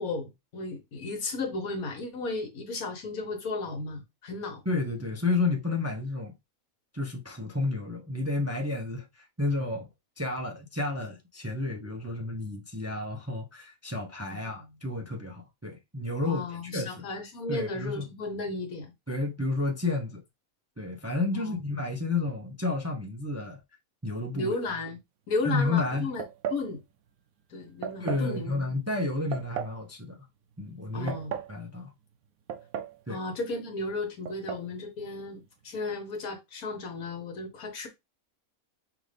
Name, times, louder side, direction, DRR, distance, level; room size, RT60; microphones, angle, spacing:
voice 1, 0.0-4.6 14.3-14.6 16.2-18.9 21.3-21.6 24.3-25.0 25.3-26.2 26.5-26.8 27.5-28.5 30.9-31.3 33.1-37.9, left 3 dB, 85° left, 1.6 m, -34 dB
voice 2, 4.6-6.3 6.9-9.9 10.2-16.4 16.7-17.0 17.5-18.1 19.1-20.2 20.8-23.6 24.0-24.5 25.4-26.1 28.0-30.2 30.6-31.1 31.5-31.9 33.1-33.2, left 3 dB, 15° right, 0.5 m, -31 dB
sound 1, 26.2-26.7 27.8-28.3 29.3-29.8 30.8-31.5 32.5-33.0 33.3-33.4 34.3-34.7, right 8 dB, 80° right, 1.0 m, -35 dB
5.7 x 2.6 x 3.3 m
omnidirectional pair, 1.5 m